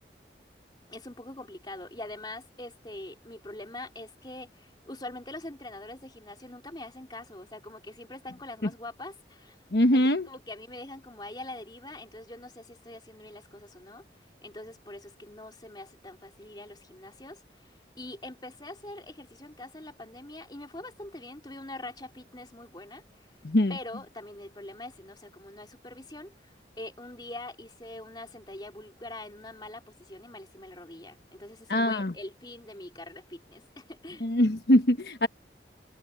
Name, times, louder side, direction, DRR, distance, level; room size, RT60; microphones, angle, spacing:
voice 1, 0.9-9.6 9.9-14.0 14.4-23.3 23.7-34.3, left 2 dB, 25° left, 3.5 m, -44 dB
voice 2, 9.7-10.3 23.4-23.8 31.7-32.1 34.2-35.3, left 1 dB, 70° left, 1.2 m, -23 dB
head